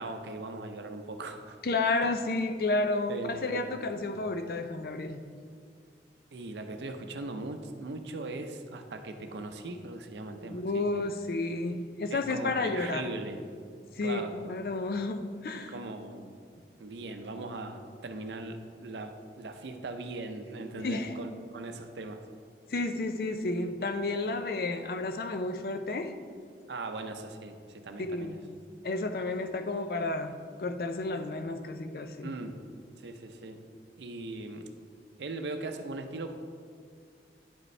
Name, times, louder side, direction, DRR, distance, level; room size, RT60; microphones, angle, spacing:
voice 1, 0.0-1.6 3.1-3.9 6.3-10.8 12.1-13.4 14.0-14.4 15.7-16.3 16.8-22.2 23.6-23.9 26.7-28.4 32.2-32.6 33.0-33.6 34.0-34.7 35.2-36.3, right 2 dB, 80° right, 7 dB, 0.6 m, -39 dB
voice 2, 1.6-5.2 10.4-13.1 14.0-15.7 20.8-21.2 22.7-26.1 28.0-28.4 28.8-32.3, left 2 dB, 55° left, 8 dB, 0.4 m, -31 dB
10.0 x 5.1 x 3.2 m, 2.1 s
head